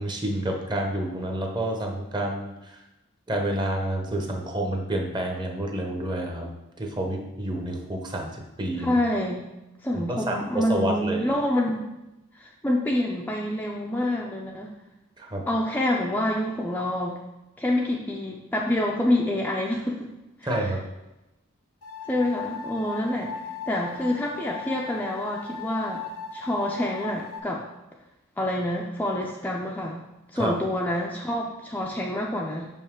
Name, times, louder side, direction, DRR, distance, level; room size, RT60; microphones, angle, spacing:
voice 1, 0.0-2.8 3.3-9.0 9.9-11.3 15.2-15.4 20.4-20.8 30.4-30.5, right 1 dB, 20° right, 1 dB, 0.9 m, -29 dB
voice 2, 8.8-9.5 9.8-11.9 12.4-14.7 15.5-17.2 17.6-20.1 20.4-20.7 22.1-23.3 23.7-26.0 26.3-27.6 28.4-30.0 30.3-32.7, left 1 dB, 10° left, -2 dB, 0.5 m, -27 dB
sound 1, 21.8-27.4, left 5 dB, 90° left, 0.8 m, -37 dB
6.4 x 5.4 x 3.7 m, 0.96 s
head